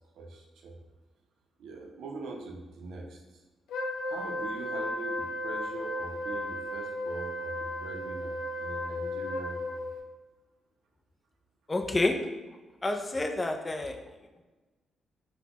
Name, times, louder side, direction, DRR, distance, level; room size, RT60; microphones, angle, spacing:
voice 1, 0.2-0.8 1.6-3.4 4.1-9.8, right 3 dB, 75° right, 1 dB, 0.5 m, -42 dB
Wind instrument woodwind instrument, 3.7-10.0, left 1 dB, 90° left, 0.4 m, -35 dB
voice 2, 11.7-12.1 12.8-14.0, left 2 dB, 20° left, 4 dB, 0.4 m, -28 dB
4.0 x 2.1 x 2.8 m, 1.2 s
cardioid pair, 95°, 0 cm